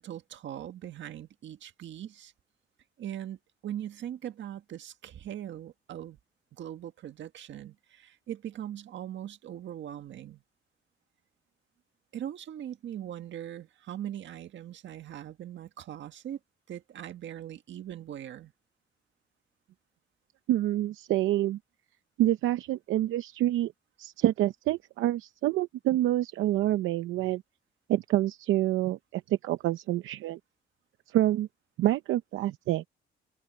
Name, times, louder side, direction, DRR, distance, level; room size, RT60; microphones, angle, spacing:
voice 1, 0.0-2.3 3.0-6.2 6.5-10.4 12.1-16.4 16.7-18.5, right 11 dB, 70° right, 1.7 m, -40 dB
voice 2, 20.5-21.6 22.2-23.7 24.0-27.4 27.9-30.4 31.1-31.5 31.8-32.9, right 14 dB, 85° right, 0.7 m, -27 dB
cardioid pair, 90°, 20 cm